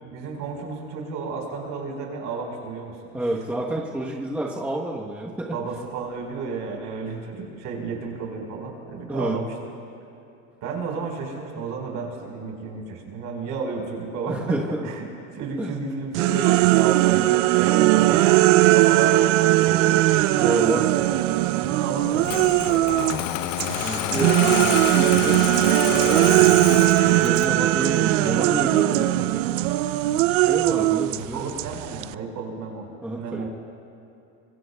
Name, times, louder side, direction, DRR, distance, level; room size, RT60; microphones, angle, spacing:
voice 1, 0.0-3.0 5.5-9.5 10.6-14.6 14.8-15.0 15.3-20.0 20.8-21.1 21.5-23.0 30.9-31.1 31.3-32.9 33.2-33.5, right 4 dB, 50° right, 0 dB, 4.6 m, -33 dB
voice 2, 3.1-5.6 9.1-9.4 14.3-14.8 15.6-15.9 17.1-17.4 17.8-18.2 19.9-20.1 20.4-20.9 23.7-25.5 25.9-29.6 30.3-31.4 33.0-33.5, right 1 dB, 5° right, -3 dB, 1.1 m, -29 dB
sound 1, 16.1-23.2 23.6-32.1, right 17 dB, 70° right, 0.6 m, -19 dB
Engine starting, 22.2-27.6, left 12 dB, 70° left, 0.9 m, -28 dB
26.0 x 23.0 x 2.3 m, 2.8 s
supercardioid pair, 130°, 39 cm